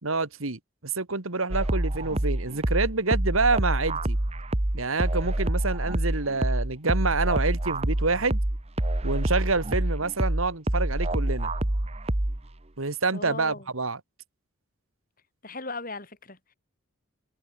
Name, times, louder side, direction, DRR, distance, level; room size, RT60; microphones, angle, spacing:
voice 1, 0.0-4.2 4.7-8.4 9.0-11.5 12.8-14.0, right 3 dB, 80° right, 2.3 m, -27 dB
sound 1, 1.5-12.5, right 1 dB, 30° right, 1.2 m, -27 dB
voice 2, 13.1-13.6 15.4-16.5, left 3 dB, 40° left, 7.4 m, -37 dB
head